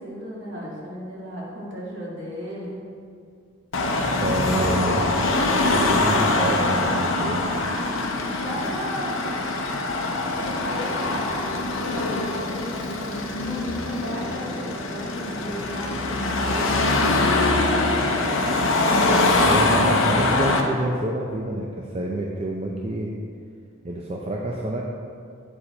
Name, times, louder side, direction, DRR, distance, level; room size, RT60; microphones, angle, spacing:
voice 1, 0.0-2.8 8.3-9.5 10.3-18.5, equal, 55° right, -6 dB, 1.9 m, -35 dB
Car passing by / Traffic noise roadway noise / Engine, 3.7-20.6, left 2 dB, 70° left, 0.7 m, -23 dB
voice 2, 4.2-5.1 5.7-7.5 19.4-23.1 23.8-24.8, right 1 dB, 30° right, -2 dB, 0.4 m, -27 dB
Guitar, 10.6-20.6, equal, 55° left, 1.1 m, -43 dB
8.5 x 4.8 x 4.3 m, 2.3 s
head